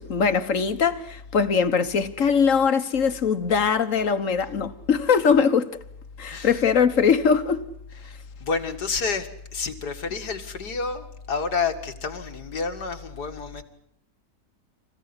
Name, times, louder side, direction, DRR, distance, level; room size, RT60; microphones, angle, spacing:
voice 1, 0.0-5.8 6.2-7.6, left 6 dB, 55° left, 1.7 m, -21 dB
voice 2, 6.3-6.6 8.0-8.1 8.4-13.6, left 5 dB, 80° left, 2.6 m, -29 dB
27.5 x 16.0 x 9.8 m
omnidirectional pair, 1.7 m